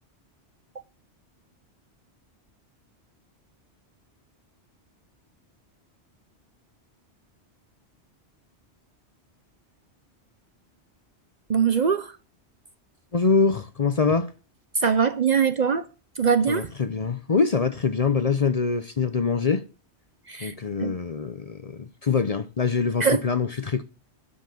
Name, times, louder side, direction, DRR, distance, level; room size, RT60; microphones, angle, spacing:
voice 1, 11.5-12.1 14.8-15.8 16.2-16.7 20.3-20.5 20.8-20.9 23.0-23.2, right 6 dB, 45° right, 0.7 m, -22 dB
voice 2, 13.1-14.3 16.5-19.6 20.4-23.8, left 5 dB, 40° left, 0.7 m, -24 dB
12.0 x 5.8 x 7.7 m
omnidirectional pair, 1.2 m